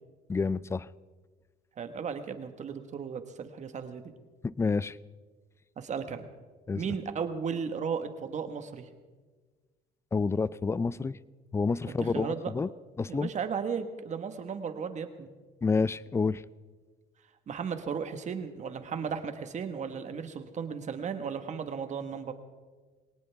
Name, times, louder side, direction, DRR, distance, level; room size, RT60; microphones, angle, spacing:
voice 1, 0.3-0.9 4.4-5.0 6.7-6.8 10.1-11.2 11.5-12.7 13.0-13.3 15.6-16.4, left 4 dB, 15° left, 20 dB, 0.4 m, -28 dB
voice 2, 1.8-4.0 5.8-6.3 6.8-8.9 11.9-12.5 13.1-15.3 17.5-22.3, right 6 dB, 45° right, 8 dB, 1.4 m, -35 dB
21.5 x 18.5 x 3.5 m, 1.4 s
cardioid pair, 110°, 17 cm